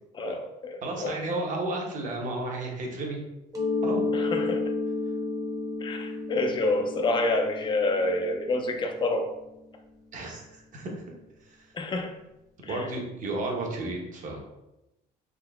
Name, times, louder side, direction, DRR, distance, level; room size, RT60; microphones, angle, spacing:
voice 1, 0.1-1.2 4.1-4.7 5.8-9.3 11.7-12.1 12.6-12.9, left 2 dB, 30° left, 5 dB, 0.4 m, -28 dB
voice 2, 0.8-3.2 3.8-4.0 10.1-11.2 11.4-11.7 12.7-14.4, right 2 dB, 50° right, 0 dB, 0.9 m, -33 dB
Mallet percussion, 3.5-9.1, left 3 dB, 20° right, 0.7 m, -31 dB
3.7 x 2.7 x 2.2 m, 0.92 s
cardioid pair, 110°, 17 cm